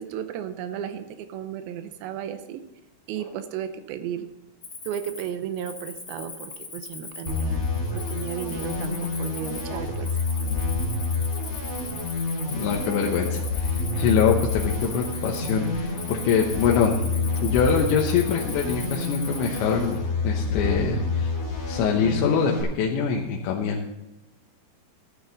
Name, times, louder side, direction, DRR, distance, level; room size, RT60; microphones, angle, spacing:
voice 1, 0.0-2.6 3.1-4.3 4.9-7.7 7.9-10.1, right 9 dB, 80° right, 9 dB, 2.1 m, -34 dB
Cricket, 4.6-20.0, left 3 dB, 50° left, 0.9 m, -39 dB
sound 1, 7.3-22.6, left 3 dB, 15° left, 3.0 m, -28 dB
voice 2, 12.5-16.9 17.4-21.3 21.7-24.0, left 6 dB, 80° left, -1 dB, 3.3 m, -24 dB
13.0 x 11.0 x 4.0 m, 1.0 s
omnidirectional pair, 5.3 m